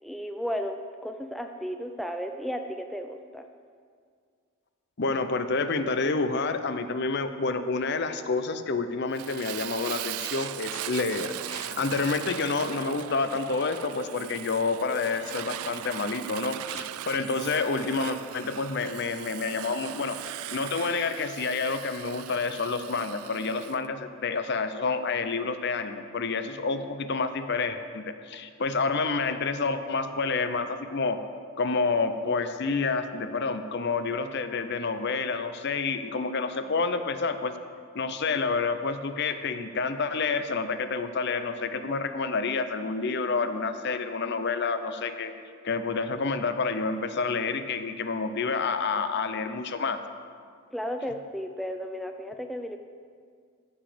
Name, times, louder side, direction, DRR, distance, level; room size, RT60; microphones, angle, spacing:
voice 1, 0.0-3.4 50.7-52.8, equal, ahead, 5 dB, 0.4 m, -34 dB
voice 2, 5.0-20.2 20.5-31.2 31.6-37.5 37.9-45.3 45.6-50.0, left 4 dB, 50° left, 9 dB, 0.6 m, -29 dB
Fire, 9.1-23.8, right 12 dB, 80° right, 0.3 m, -39 dB
15.0 x 7.1 x 5.0 m, 2.1 s
head